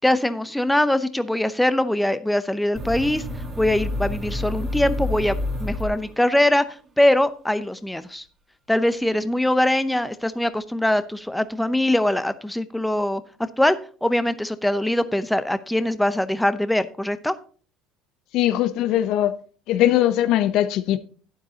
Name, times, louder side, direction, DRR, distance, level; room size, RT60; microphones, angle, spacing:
voice 1, 0.0-3.2 3.6-8.2 8.7-17.4, left 1 dB, 5° left, 0.7 m, -22 dB
sound 1, 2.8-6.5, left 1 dB, 35° right, 1.9 m, -29 dB
voice 2, 18.3-19.4 19.7-21.0, left 12 dB, 65° left, 0.6 m, -20 dB
12.0 x 9.2 x 2.8 m
supercardioid pair, 85°, 0 cm